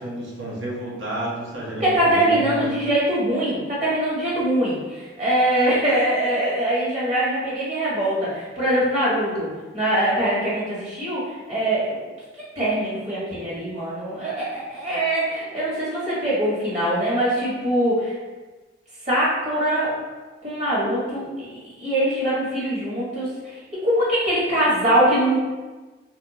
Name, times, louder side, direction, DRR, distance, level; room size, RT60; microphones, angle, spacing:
voice 1, 0.0-2.8, right 1 dB, 75° right, -4 dB, 0.9 m, -31 dB
voice 2, 1.8-9.5 9.7-12.0 12.6-18.1 19.0-19.9 20.4-25.4, right 1 dB, 40° right, -8 dB, 1.4 m, -23 dB
2.8 x 2.3 x 3.8 m, 1.3 s
head